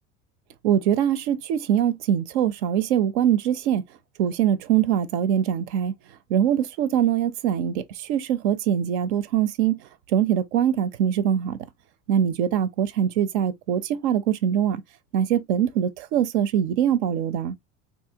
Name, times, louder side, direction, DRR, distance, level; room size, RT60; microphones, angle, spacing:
voice 1, 0.6-3.8 4.2-5.9 6.3-9.8 10.1-11.6 12.1-14.8 15.1-17.6, right 9 dB, 85° right, 0.7 m, -23 dB
3.6 x 2.8 x 2.8 m
supercardioid pair, 130°, 33 cm